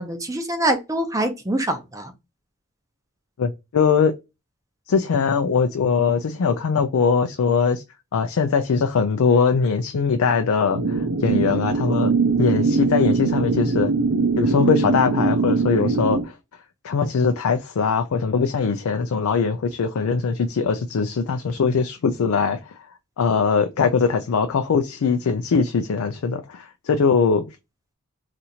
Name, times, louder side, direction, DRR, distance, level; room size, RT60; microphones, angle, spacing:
voice 1, 0.0-2.1 11.4-11.5, right 1 dB, 15° right, 0.5 m, -25 dB
voice 2, 3.4-4.1 4.9-7.8 8.1-12.1 12.4-13.9 14.4-16.3 16.8-22.6 23.2-27.5, left 5 dB, 75° left, 0.4 m, -21 dB
sound 1, 10.7-16.2, right 4 dB, 75° right, 0.7 m, -21 dB
2.8 x 2.5 x 4.2 m
head